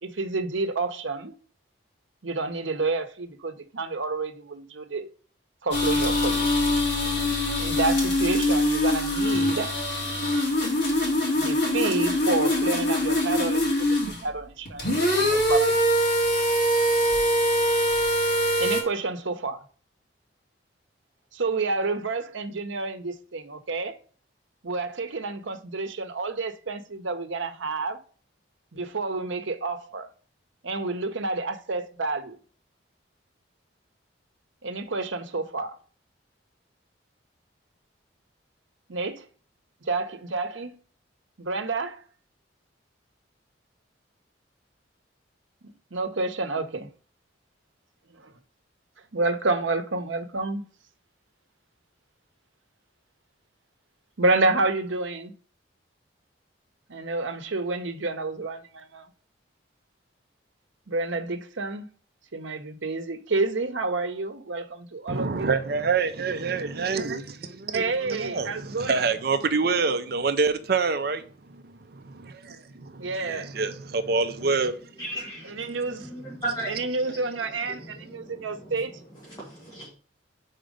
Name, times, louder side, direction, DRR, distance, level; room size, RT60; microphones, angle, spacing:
voice 1, 0.0-1.3 2.2-5.1 5.6-6.5 7.6-9.7 11.4-14.9 15.1-15.8 18.6-19.6 21.3-24.0 24.6-28.0 28.7-30.1 30.6-32.4 34.6-35.8 38.9-39.3 39.9-40.7 41.4-42.0 45.9-46.9 48.1-48.3 49.1-50.6 54.2-55.3 56.9-59.1 60.9-61.9 62.3-65.5 67.7-69.0 73.0-73.5 75.4-76.2 76.7-79.0, right 3 dB, 85° right, 0.8 m, -29 dB
sound 1, 5.7-14.2 14.7-18.8, left 1 dB, 65° left, 2.6 m, -23 dB
voice 2, 65.1-71.2 71.9-74.8, right 4 dB, 55° right, 0.6 m, -27 dB
voice 3, 75.0-75.7 76.0-76.8 77.8-77.9 78.1-78.5 79.3-79.9, right 2 dB, 20° left, 2.0 m, -35 dB
5.1 x 4.4 x 5.1 m
head